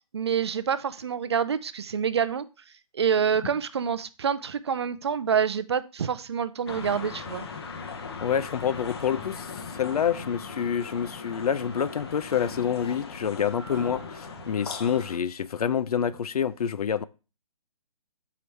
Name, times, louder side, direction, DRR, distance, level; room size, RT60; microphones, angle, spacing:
voice 1, 0.1-2.4 2.9-7.5, right 7 dB, 45° right, 0.4 m, -27 dB
sound 1, 6.7-15.2, left 4 dB, 45° left, 0.8 m, -39 dB
voice 2, 8.2-17.1, left 8 dB, 85° left, 0.5 m, -27 dB
6.9 x 4.8 x 3.1 m
hypercardioid pair, 170°, 19 cm